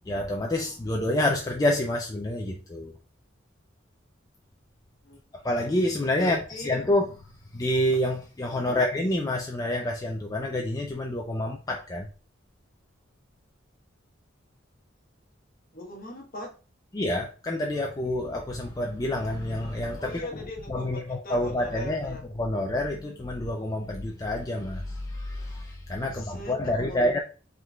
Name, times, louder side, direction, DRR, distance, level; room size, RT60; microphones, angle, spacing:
voice 1, 0.1-2.9 5.3-6.4 6.6-7.2 7.5-12.1 16.9-20.2 20.7-27.2, left 1 dB, 20° left, 0.4 m, -28 dB
voice 2, 6.1-6.8 8.5-8.8 15.7-16.6 20.0-22.3 26.0-27.2, left 1 dB, 45° left, 1.2 m, -40 dB
5.2 x 3.8 x 2.3 m
head